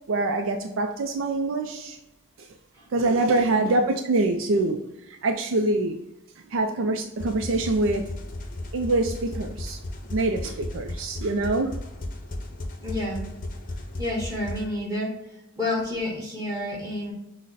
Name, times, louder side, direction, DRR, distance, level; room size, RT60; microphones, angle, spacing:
voice 1, 0.1-2.0 2.4-2.5 2.9-6.0 6.5-8.2 8.7-9.8 10.1-11.7, right 2 dB, 80° right, 5 dB, 0.4 m, -25 dB
sound 1, 7.2-14.6, left 1 dB, 40° left, 0.6 m, -35 dB
voice 2, 12.8-13.2 14.0-15.1 15.6-17.1, left 1 dB, 15° right, -5 dB, 1.4 m, -29 dB
6.2 x 2.1 x 4.0 m, 0.90 s
head